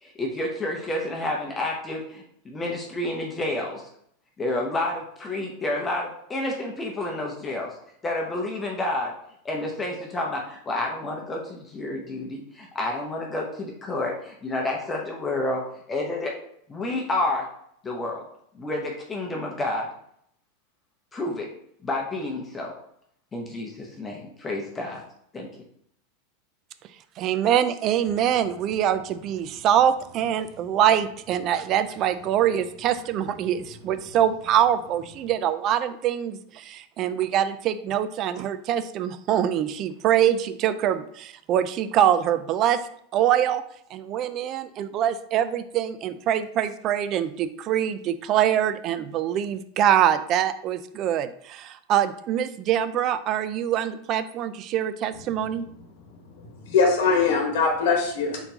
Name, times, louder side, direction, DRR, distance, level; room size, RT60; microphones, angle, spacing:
voice 1, 0.0-3.9 4.4-7.7 8.0-9.1 9.4-15.6 15.9-16.3 16.7-17.5 17.8-18.2 18.5-19.9 21.1-21.5 21.8-22.7 23.3-25.0 25.3-25.5, left 2 dB, 15° left, 0 dB, 0.7 m, -29 dB
voice 2, 27.2-42.8 43.1-43.6 43.9-55.7, right 10 dB, 35° right, 13 dB, 0.3 m, -24 dB
voice 3, 56.4-58.4, left 4 dB, 70° left, 1 dB, 1.1 m, -22 dB
4.3 x 3.9 x 2.7 m, 0.69 s
supercardioid pair, 145°, 0 cm